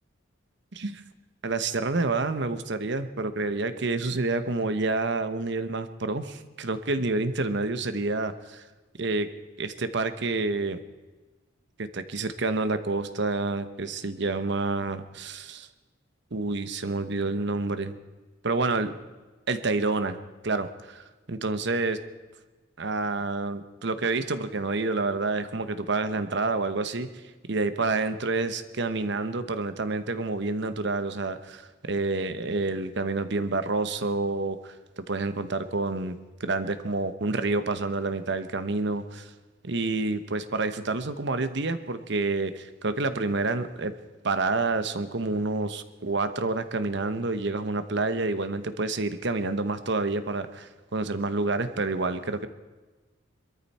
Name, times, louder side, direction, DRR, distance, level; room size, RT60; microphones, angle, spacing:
voice 1, 0.7-1.0 1.4-8.6 9.0-9.3 9.6-10.8 11.8-15.7 16.3-17.9 18.4-18.9 19.5-20.2 20.4-22.0 22.8-27.1 27.5-39.3 39.6-43.9 44.2-52.5, right 3 dB, 60° right, 11 dB, 1.0 m, -28 dB
22.5 x 13.5 x 4.3 m, 1.2 s
head